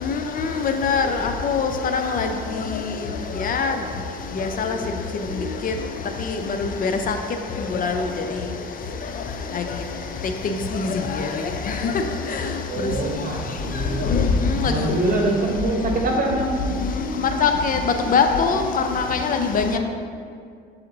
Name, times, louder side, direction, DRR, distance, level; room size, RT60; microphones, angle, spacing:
voice 1, 0.0-2.3 3.4-3.7 4.4-4.8 5.6-5.7 6.6-7.1 7.7-7.9 9.5-9.6 10.7-11.3 11.8-11.9 14.1-14.3 14.6-14.9 17.2-17.8 18.1-18.6 18.9-19.8, left 5 dB, 50° left, 6 dB, 0.6 m, -22 dB
voice 2, 12.7-14.1 14.6-16.5, right 2 dB, 45° right, 1 dB, 1.3 m, -24 dB
7.6 x 4.2 x 3.9 m, 2.2 s
supercardioid pair, 85°, 19 cm